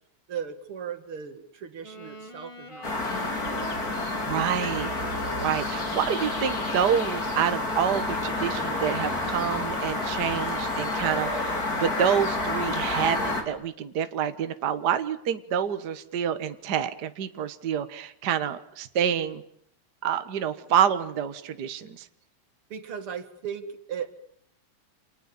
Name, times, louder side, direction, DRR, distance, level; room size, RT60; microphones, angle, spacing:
voice 1, 0.3-3.8 22.7-24.1, right 7 dB, 80° right, 9 dB, 3.0 m, -37 dB
Wind instrument woodwind instrument, 1.8-9.0, equal, 15° left, 2.5 m, -43 dB
sound 1, 2.8-13.4, left 2 dB, 40° left, 4.2 m, -29 dB
voice 2, 4.2-4.9 5.3-19.4 20.0-22.1, right 8 dB, 55° right, 10 dB, 1.7 m, -27 dB
29.0 x 27.5 x 7.1 m, 0.69 s
omnidirectional pair, 2.4 m